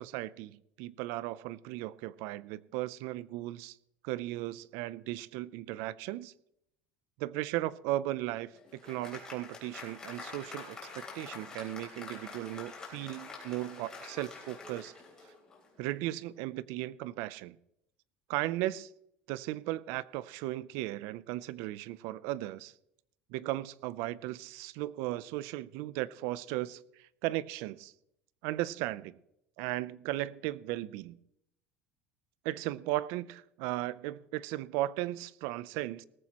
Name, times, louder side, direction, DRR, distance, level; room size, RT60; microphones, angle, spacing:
voice 1, 0.0-3.8 4.0-6.3 7.2-14.9 15.8-17.6 18.3-18.9 19.3-22.7 23.3-27.9 28.4-29.2 29.6-31.2 32.4-36.0, right 16 dB, 65° right, 20 dB, 0.5 m, -36 dB
Applause, 8.2-15.8, left 4 dB, 15° left, 3.4 m, -47 dB
18.5 x 14.5 x 3.0 m, 0.79 s
cardioid pair, 165°, 5 cm